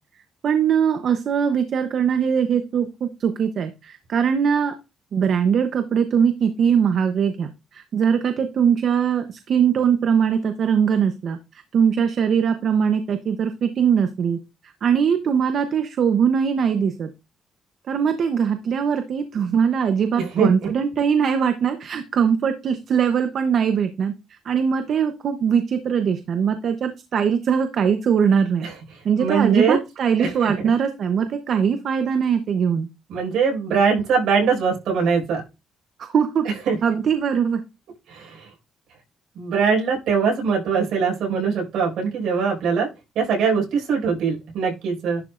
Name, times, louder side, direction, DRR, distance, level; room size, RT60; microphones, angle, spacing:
voice 1, 0.4-4.7 5.1-11.4 11.7-14.4 14.8-17.1 17.9-24.1 24.4-28.7 29.0-32.9 36.1-36.5 36.8-37.6, right 7 dB, 60° right, 8 dB, 0.8 m, -21 dB
voice 2, 20.2-20.7 28.6-28.7 29.2-29.8 30.2-30.5 33.1-35.4 36.4-36.8 38.1-38.5 39.4-42.9 43.2-45.2, right 5 dB, 80° right, -1 dB, 5.4 m, -22 dB
11.5 x 6.0 x 2.5 m, 0.26 s
cardioid pair, 90°, 0 cm